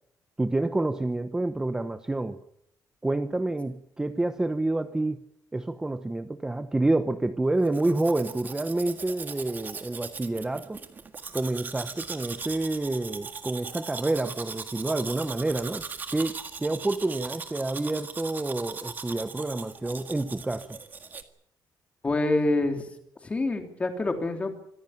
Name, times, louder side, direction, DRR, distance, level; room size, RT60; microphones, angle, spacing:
voice 1, 0.4-2.4 3.0-5.2 5.5-10.8 11.3-15.8 16.1-20.8, right 2 dB, 10° right, 10 dB, 0.9 m, -28 dB
Domestic sounds home sounds, 7.6-21.2, right 5 dB, 25° right, 1.8 m, -39 dB
voice 2, 22.0-22.8 23.2-24.5, left 2 dB, 20° left, 5 dB, 3.2 m, -26 dB
26.0 x 15.5 x 8.8 m, 0.75 s
cardioid pair, 180°, 7 cm